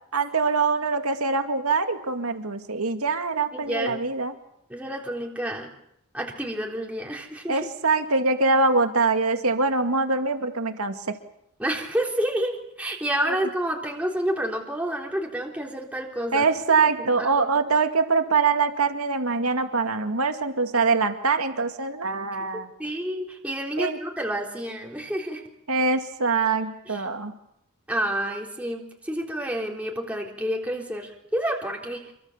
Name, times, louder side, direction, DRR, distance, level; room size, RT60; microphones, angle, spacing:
voice 1, 0.1-4.3 7.5-11.2 13.2-13.4 16.3-22.7 23.8-24.0 25.7-27.3, right 4 dB, 85° right, 6 dB, 2.2 m, -23 dB
voice 2, 3.5-4.0 4.7-5.7 6.1-7.6 11.6-16.5 16.8-17.5 22.5-25.4 26.9-27.0 27.9-32.1, right 1 dB, 5° right, 0 dB, 3.6 m, -29 dB
28.0 x 23.5 x 7.3 m, 0.77 s
head